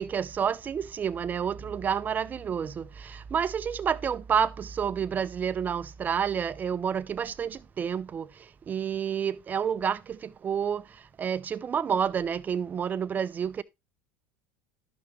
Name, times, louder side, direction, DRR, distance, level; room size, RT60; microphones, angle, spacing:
voice 1, 0.0-2.8 3.3-8.2 8.7-10.0 10.4-10.8 11.2-13.6, right 7 dB, 30° right, 0.6 m, -29 dB
11.5 x 5.8 x 3.1 m
supercardioid pair, 110°, 6 cm